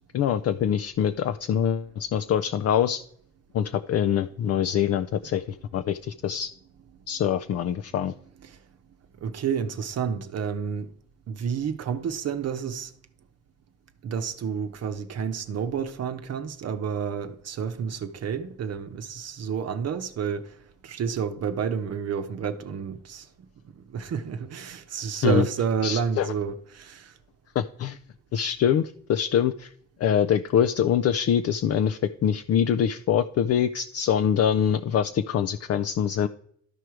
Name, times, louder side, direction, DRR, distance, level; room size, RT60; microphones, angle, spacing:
voice 1, 0.1-3.0 3.5-6.5 7.1-8.1 25.2-25.5 25.8-26.3 27.6-28.0 28.3-29.7 30.0-36.3, left 9 dB, 55° left, 0.5 m, -24 dB
voice 2, 9.2-10.9 11.3-12.9 14.0-20.6 20.8-23.3 23.8-27.1, right 7 dB, 55° right, 0.8 m, -30 dB
12.5 x 4.8 x 4.5 m
cardioid pair, 90°, 30 cm